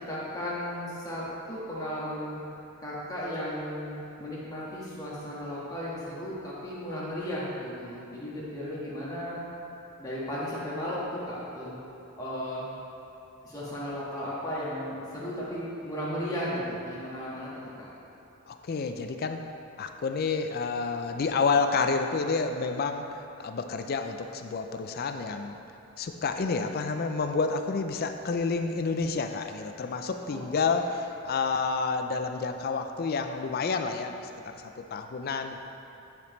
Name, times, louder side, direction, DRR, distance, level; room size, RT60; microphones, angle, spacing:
voice 1, 0.0-2.4 2.8-9.4 10.0-11.8 12.2-12.7 13.4-17.5 17.8-17.9 30.2-30.7, equal, 15° left, -8 dB, 1.4 m, -35 dB
voice 2, 18.5-19.4 19.8-23.1 23.4-25.6 26.0-34.2 34.5-35.6, left 4 dB, 45° left, 6 dB, 0.4 m, -29 dB
9.7 x 5.1 x 3.1 m, 3.0 s
head